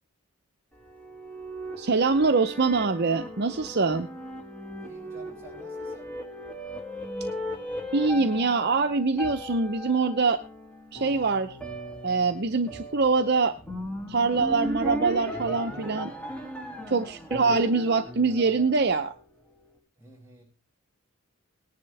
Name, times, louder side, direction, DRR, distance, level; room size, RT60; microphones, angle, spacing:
sound 1, 0.7-19.3, equal, 5° left, 2.3 m, -37 dB
voice 1, 1.8-4.1 7.9-10.4 10.9-11.6 12.0-13.5 14.1-16.1 16.9-19.1, right 4 dB, 45° right, 8 dB, 0.6 m, -24 dB
voice 2, 4.8-6.1 13.9-14.2 16.7-17.1 20.0-20.4, right 1 dB, 10° right, 0 dB, 6.7 m, -51 dB
19.0 x 10.5 x 3.3 m, 0.33 s
head